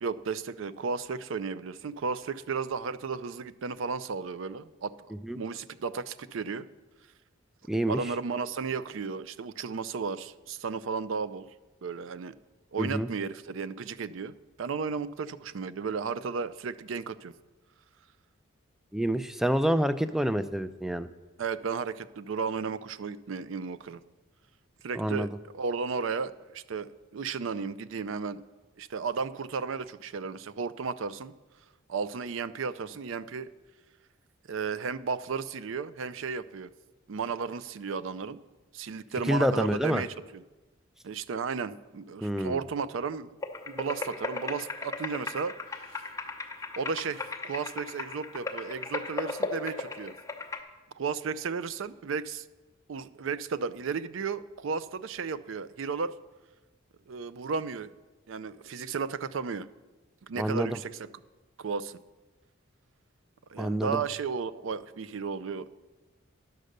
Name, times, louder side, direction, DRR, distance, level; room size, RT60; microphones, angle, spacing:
voice 1, 0.0-4.9 5.3-6.7 7.9-11.5 11.8-12.3 12.7-17.3 21.4-24.0 24.8-25.3 25.5-28.4 28.8-31.3 31.9-33.5 34.5-36.7 37.1-38.4 38.7-40.4 41.0-43.4 43.7-46.1 46.8-50.1 50.9-52.5 52.9-56.1 57.1-57.9 58.3-59.7 60.3-61.1 61.6-62.0 63.5-65.7, right 5 dB, 70° right, 15 dB, 0.4 m, -34 dB
voice 2, 7.7-8.0 12.8-13.1 18.9-21.1 25.0-25.3 39.3-40.0 42.2-42.6 60.4-60.8 63.6-64.0, equal, ahead, 12 dB, 0.3 m, -27 dB
sound 1, 43.4-50.6, left 3 dB, 15° left, 0.7 m, -37 dB
10.5 x 6.4 x 6.6 m, 1.2 s
head